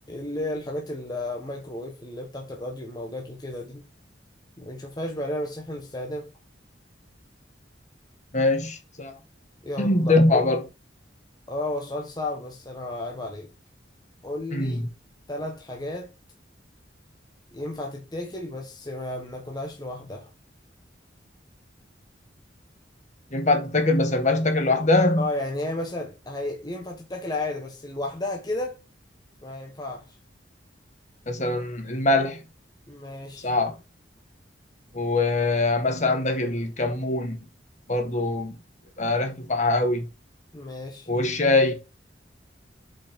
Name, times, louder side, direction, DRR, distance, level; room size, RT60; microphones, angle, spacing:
voice 1, 0.1-3.8 4.6-6.3 9.6-10.5 11.5-13.5 14.2-14.9 15.3-16.1 17.5-20.3 25.2-28.8 29.4-30.1 32.9-33.5 40.5-41.1, left 1 dB, 20° left, 1.3 m, -33 dB
voice 2, 8.3-9.1 9.8-10.6 14.5-14.9 23.3-25.3 31.3-32.4 33.4-33.7 34.9-37.4 37.9-38.6 39.0-40.1 41.1-41.7, left 2 dB, 40° left, 1.7 m, -23 dB
8.3 x 5.5 x 3.7 m
head